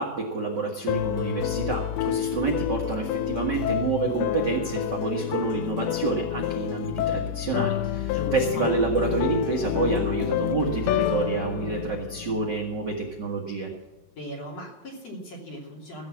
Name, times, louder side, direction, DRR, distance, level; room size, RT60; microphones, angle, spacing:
voice 1, 0.0-13.7, right 4 dB, 65° right, -2 dB, 1.0 m, -28 dB
sound 1, 0.9-13.0, left 12 dB, 80° left, 2.3 m, -28 dB
voice 2, 8.1-8.7 14.2-16.1, left 1 dB, 40° left, -1 dB, 3.5 m, -38 dB
15.5 x 7.9 x 7.4 m, 1.2 s
omnidirectional pair, 5.0 m